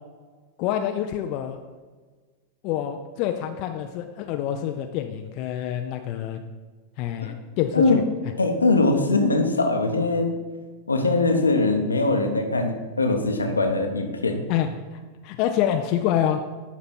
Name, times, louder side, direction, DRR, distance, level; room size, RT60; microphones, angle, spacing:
voice 1, 0.6-1.6 2.6-6.4 7.0-8.0 14.5-14.7 15.2-16.4, left 10 dB, 40° left, 6 dB, 0.5 m, -26 dB
voice 2, 8.4-10.3 10.9-14.4, left 3 dB, 75° left, 5 dB, 0.9 m, -21 dB
11.5 x 4.1 x 4.4 m, 1.4 s
figure-of-eight pair, 90°, 0 cm